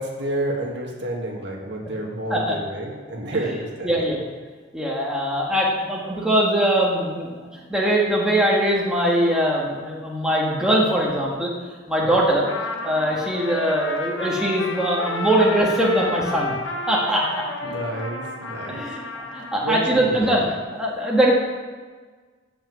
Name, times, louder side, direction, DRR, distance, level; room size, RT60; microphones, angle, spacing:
voice 1, 0.0-4.1 12.2-12.3 17.6-18.9 19.5-20.6, right 1 dB, 60° right, 0 dB, 1.8 m, -30 dB
voice 2, 3.8-4.2 4.7-7.3 7.7-11.5 11.9-12.5 12.8-16.6 16.9-17.4 18.7-20.4 20.7-21.3, right 1 dB, 5° right, -4 dB, 1.7 m, -21 dB
Trumpet, 12.4-19.7, left 2 dB, 70° left, 1.2 m, -31 dB
8.8 x 7.9 x 7.6 m, 1.5 s
head